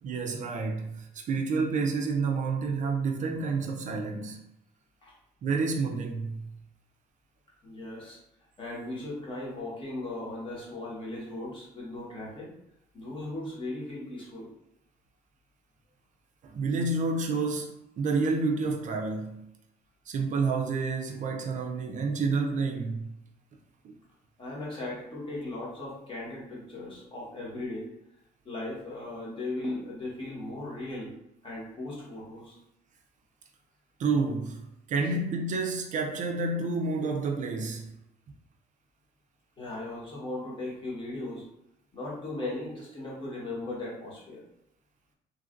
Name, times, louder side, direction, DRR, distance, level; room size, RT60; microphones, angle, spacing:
voice 1, 0.0-4.4 5.4-6.5 16.4-17.7 18.0-19.5 20.1-23.1 23.8-23.9 34.0-34.6 34.9-37.9, right 4 dB, 45° right, 0.4 m, -29 dB
voice 2, 7.6-8.2 8.6-12.5 12.9-14.5 24.4-27.9 28.4-31.1 31.4-32.6 39.6-41.4 41.9-44.4, left 2 dB, 30° left, 1.2 m, -37 dB
3.1 x 2.4 x 2.5 m
cardioid pair, 110°, 17 cm